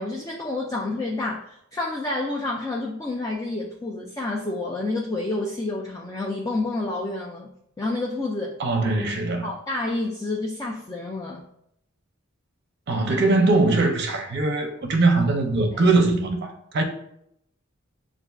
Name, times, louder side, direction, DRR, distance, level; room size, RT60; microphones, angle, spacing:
voice 1, 0.0-7.5 7.8-8.6 9.4-11.4 15.7-15.8, left 2 dB, 15° left, 0.3 m, -29 dB
voice 2, 8.6-9.5 12.9-16.8, right 3 dB, 55° right, 0.6 m, -21 dB
6.6 x 2.4 x 2.3 m
head